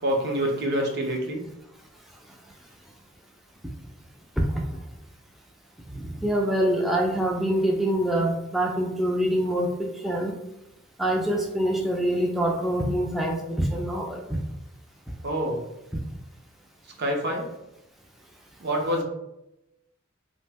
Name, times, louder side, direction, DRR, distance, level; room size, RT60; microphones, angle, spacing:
voice 1, 0.0-1.4 15.2-15.6 17.0-17.5 18.6-19.0, equal, 55° right, 1 dB, 0.6 m, -26 dB
voice 2, 5.9-10.3 11.0-14.4, right 1 dB, ahead, -1 dB, 0.3 m, -25 dB
2.8 x 2.1 x 3.3 m, 0.90 s
head